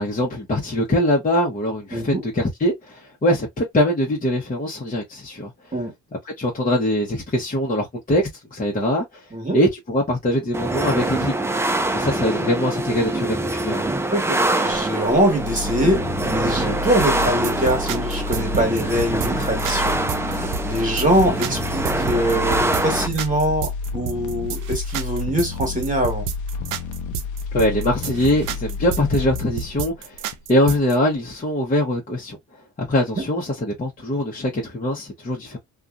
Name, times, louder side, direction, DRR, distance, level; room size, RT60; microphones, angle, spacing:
voice 1, 0.0-5.7 6.4-9.2 9.5-11.5 11.9-13.9 27.5-32.4 32.8-35.6, left 1 dB, 30° left, 1.0 m, -22 dB
voice 2, 1.9-2.2 5.7-5.9 9.3-9.6 11.9-12.1 14.1-26.3 33.2-33.3, equal, 25° right, 1.6 m, -23 dB
sound 1, 10.5-23.1, right 2 dB, 10° right, 0.4 m, -24 dB
sound 2, 14.7-30.8 31.1-31.2, left 5 dB, 80° left, 0.7 m, -31 dB
sound 3, 17.0-31.0, right 9 dB, 90° right, 0.5 m, -31 dB
2.6 x 2.4 x 2.4 m
cardioid pair, 90°, 30 cm